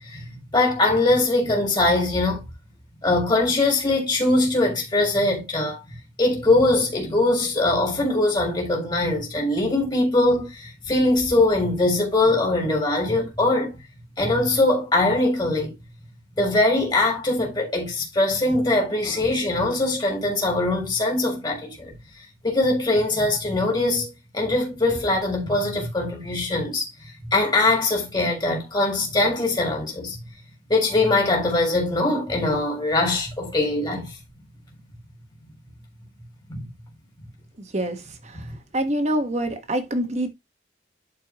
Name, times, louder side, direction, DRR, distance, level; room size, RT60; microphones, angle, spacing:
voice 1, 0.1-2.4 3.0-5.8 6.2-13.8 14.2-15.7 16.4-21.9 22.4-26.9 27.3-30.2 30.7-34.1 36.5-36.7, left 2 dB, 25° left, 3.4 m, -22 dB
voice 2, 37.7-38.5 38.7-40.3, right 1 dB, 35° right, 1.3 m, -26 dB
11.5 x 4.7 x 3.0 m
head